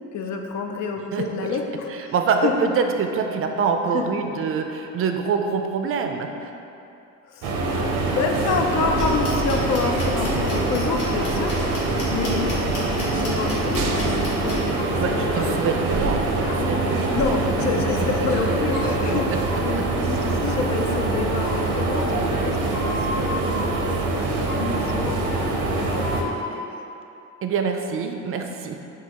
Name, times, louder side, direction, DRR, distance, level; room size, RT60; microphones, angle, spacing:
voice 1, 0.1-2.1 2.4-2.5 3.9-4.1 7.2-7.9 8.1-11.6 12.0-12.5 12.9-15.5 15.9-16.8 17.1-19.3 19.6-26.3 26.5-26.8, left 4 dB, 65° left, 3 dB, 0.5 m, -28 dB
voice 2, 1.9-6.5 15.0-16.3 16.7-17.3 18.9-19.4 19.8-19.9 27.4-28.7, right 5 dB, 45° right, 5 dB, 0.4 m, -25 dB
sound 1, 7.4-26.2, right 2 dB, 90° right, 0.6 m, -24 dB
sound 2, 8.8-14.6, left 1 dB, 85° left, 1.0 m, -32 dB
sound 3, 10.8-11.8 12.4-15.8 16.5-18.4 18.7-19.8 20.5-23.8 24.5-26.7, left 1 dB, ahead, 0.7 m, -36 dB
6.0 x 2.4 x 2.9 m, 2.8 s
cardioid pair, 90°, 30 cm